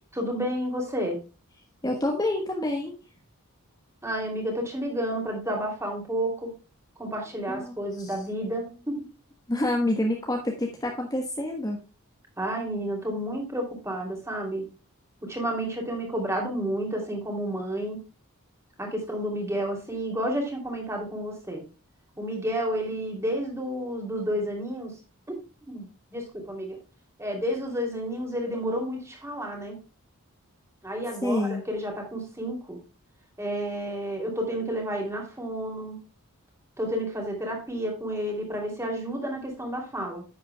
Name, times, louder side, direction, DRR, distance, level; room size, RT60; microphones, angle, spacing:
voice 1, 0.1-1.2 4.0-6.5 7.0-9.1 12.4-14.7 15.2-18.0 18.8-21.6 22.2-25.0 25.6-26.8 27.2-29.8 30.8-32.8 33.4-36.0 36.8-40.2, equal, 15° right, 1 dB, 2.8 m, -31 dB
voice 2, 1.8-2.9 7.5-8.1 9.5-11.8 31.2-31.6, left 1 dB, 15° left, 1 dB, 1.2 m, -27 dB
10.5 x 8.5 x 2.2 m, 0.32 s
head